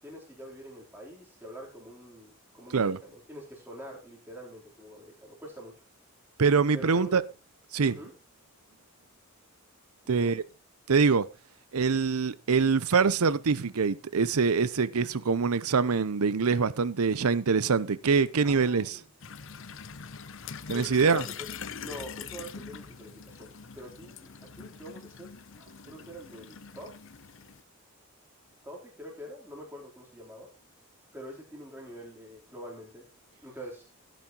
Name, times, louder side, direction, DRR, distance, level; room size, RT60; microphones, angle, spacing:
voice 1, 0.0-5.7 6.7-7.2 7.9-8.1 10.0-10.4 18.4-19.1 20.7-21.4 21.8-27.0 28.6-30.5 31.1-33.1 33.4-33.9, equal, 10° right, 3.5 m, -45 dB
voice 2, 6.4-7.2 7.7-8.0 10.1-10.4 10.9-11.3 11.7-19.0 20.7-21.2, right 5 dB, 85° right, 0.7 m, -24 dB
sound 1, 19.2-27.6, left 6 dB, 60° left, 0.7 m, -43 dB
15.5 x 9.3 x 2.9 m
head